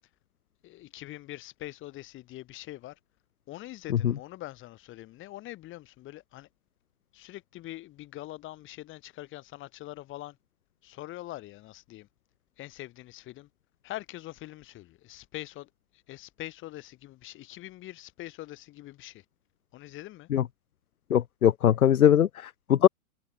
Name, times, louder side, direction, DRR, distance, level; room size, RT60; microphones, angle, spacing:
voice 1, 0.6-3.0 3.5-6.5 7.1-10.4 10.8-12.1 12.6-13.5 13.8-15.7 16.1-19.2 19.7-20.3, left 16 dB, 25° left, 5.7 m, -43 dB
voice 2, 21.1-22.9, left 10 dB, 75° left, 0.9 m, -21 dB
hypercardioid pair, 120°, 43 cm